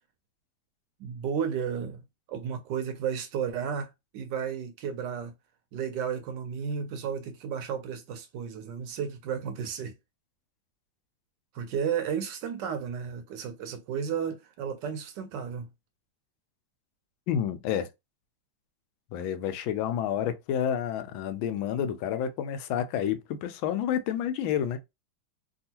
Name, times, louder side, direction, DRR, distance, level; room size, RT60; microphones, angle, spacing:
voice 1, 1.0-2.0 2.3-5.3 5.7-9.9 11.5-15.7, right 7 dB, 75° right, 1.1 m, -33 dB
voice 2, 17.3-17.9 19.1-24.8, left 9 dB, 85° left, 1.3 m, -29 dB
3.5 x 2.3 x 2.8 m
omnidirectional pair, 2.1 m